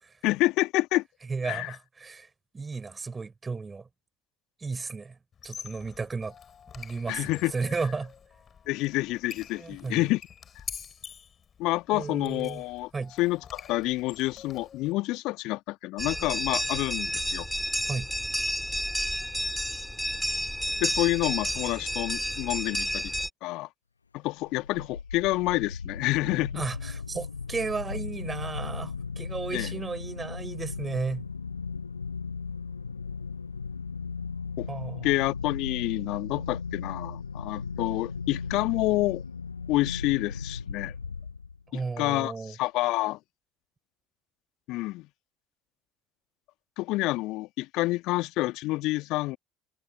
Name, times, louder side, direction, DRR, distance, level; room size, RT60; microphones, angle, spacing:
voice 1, 0.2-1.0 1.4-1.7 7.1-7.5 8.7-10.2 11.6-12.9 13.2-17.5 20.8-23.1 23.4-23.7 24.1-26.6 29.5-29.7 34.6-34.7 35.0-39.2 39.7-40.9 42.0-43.2 44.7-45.1 46.8-49.4, left 19 dB, 55° left, 1.8 m, -28 dB
voice 2, 1.3-2.3 2.5-3.9 4.6-5.2 5.4-6.3 6.7-8.1 9.5-10.1 11.9-12.6 12.9-13.1 17.9-18.1 26.5-31.3 34.7-35.1 41.7-42.5, right 4 dB, 20° right, 6.5 m, -34 dB
Squeak, 5.3-14.9, left 7 dB, 35° left, 7.7 m, -46 dB
sound 1, 16.0-23.3, equal, 5° left, 4.2 m, -31 dB
sound 2, 24.4-41.8, left 5 dB, 85° left, 0.9 m, -36 dB
figure-of-eight pair, 60°, 0 cm